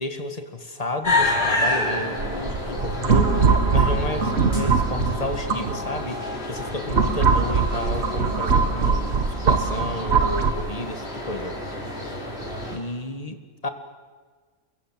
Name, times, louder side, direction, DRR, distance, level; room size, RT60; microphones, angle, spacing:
voice 1, 0.0-11.5 12.7-13.7, left 2 dB, 30° left, 7 dB, 2.1 m, -32 dB
sound 1, 1.0-12.8, left 2 dB, 50° left, 4.9 m, -29 dB
sound 2, 2.2-6.1 6.6-10.5, right 5 dB, 55° right, 1.5 m, -22 dB
29.5 x 22.0 x 7.7 m, 1.5 s
omnidirectional pair, 1.3 m